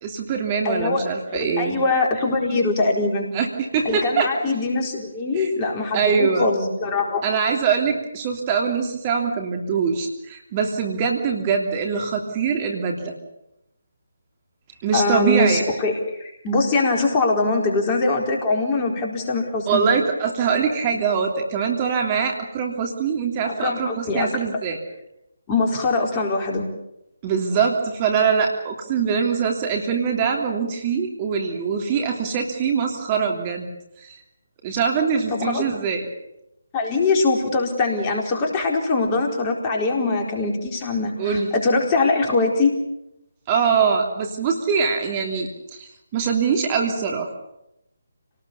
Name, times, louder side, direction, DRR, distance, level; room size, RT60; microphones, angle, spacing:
voice 1, 0.0-1.8 3.3-4.3 5.3-5.5 5.9-6.5 7.2-13.1 14.8-15.6 19.7-24.8 27.2-33.7 34.0-34.2 34.6-36.1 41.2-41.5 43.5-47.3, right 6 dB, 25° right, 2 dB, 3.0 m, -23 dB
voice 2, 0.6-1.1 1.6-3.3 3.8-7.2 14.9-19.9 23.5-24.3 25.5-26.7 35.3-35.6 36.7-42.7, left 3 dB, 20° left, 1 dB, 4.4 m, -22 dB
28.5 x 19.0 x 7.1 m, 0.84 s
figure-of-eight pair, 150°, 0 cm